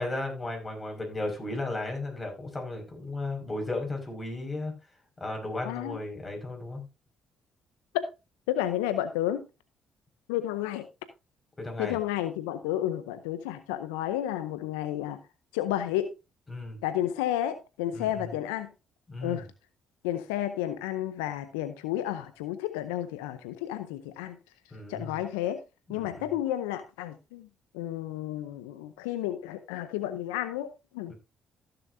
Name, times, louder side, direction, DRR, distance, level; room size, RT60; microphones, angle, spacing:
voice 1, 0.0-4.7 5.2-6.8 11.6-12.0 16.5-16.8 17.9-18.3 19.1-19.5 24.7-25.2 25.9-26.3 31.1-31.2, left 2 dB, 25° left, 5.1 m, -35 dB
voice 2, 5.6-6.0 7.9-8.1 8.5-9.5 10.3-10.9 11.8-15.2 15.5-16.1 16.8-18.7 19.2-19.5 20.0-24.4 24.9-25.6 25.9-27.5 27.7-30.7 30.9-31.1, left 12 dB, 90° left, 0.6 m, -31 dB
15.0 x 7.0 x 2.6 m
hypercardioid pair, 55°, 0 cm